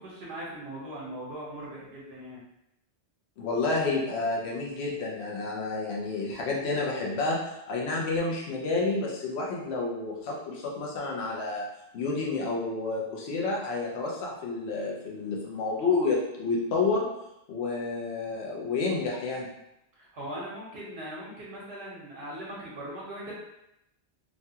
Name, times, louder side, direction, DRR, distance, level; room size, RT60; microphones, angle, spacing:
voice 1, 0.0-2.4 20.0-23.3, right 1 dB, 70° right, -6 dB, 1.1 m, -40 dB
voice 2, 3.4-7.4 7.7-11.7 11.9-17.1 17.5-19.5, left 3 dB, 75° left, -2 dB, 0.9 m, -29 dB
3.1 x 2.2 x 2.7 m, 0.84 s
omnidirectional pair, 1.1 m